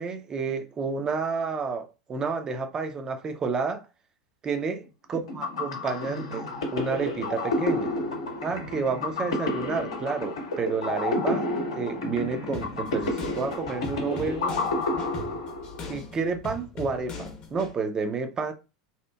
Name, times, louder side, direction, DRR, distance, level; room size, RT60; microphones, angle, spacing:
voice 1, 0.0-3.9 4.4-4.8 5.1-7.9 8.4-11.5 11.7-14.6 15.9-18.5, right 4 dB, 25° right, 0.5 m, -30 dB
sound 1, 5.1-15.9, left 2 dB, 70° left, 0.8 m, -30 dB
sound 2, 12.5-17.7, left 3 dB, 35° left, 0.8 m, -40 dB
2.8 x 2.4 x 2.2 m
figure-of-eight pair, 85°, 3 cm